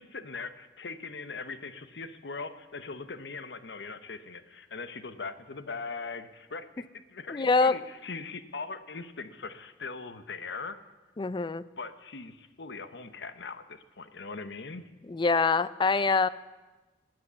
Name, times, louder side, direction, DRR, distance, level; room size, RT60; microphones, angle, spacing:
voice 1, 0.0-10.8 11.8-14.8, left 4 dB, 80° left, 11 dB, 0.9 m, -40 dB
voice 2, 7.3-7.8 11.2-11.6 15.1-16.3, left 4 dB, 25° left, 17 dB, 0.4 m, -24 dB
19.5 x 7.9 x 6.9 m, 1.2 s
head